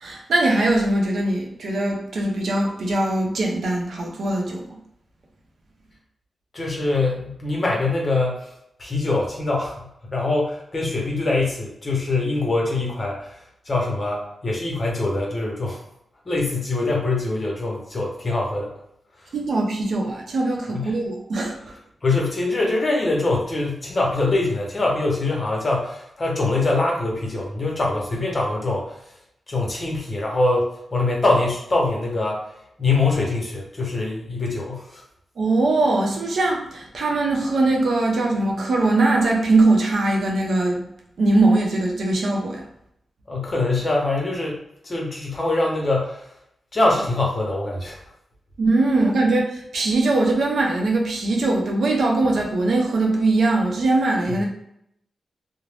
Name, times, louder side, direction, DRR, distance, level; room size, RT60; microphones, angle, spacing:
voice 1, 0.0-4.7 19.3-21.7 35.4-40.8 41.2-42.6 48.6-54.5, right 2 dB, 75° right, 0 dB, 0.6 m, -21 dB
voice 2, 6.5-8.5 8.8-15.8 16.2-18.7 20.7-20.9 22.0-29.0 29.5-32.5 32.8-35.0 43.3-44.6 44.8-46.2 46.7-48.0 54.3-54.5, left 2 dB, 40° left, -2 dB, 0.9 m, -23 dB
2.5 x 2.0 x 3.2 m, 0.75 s
cardioid pair, 85°, 0 cm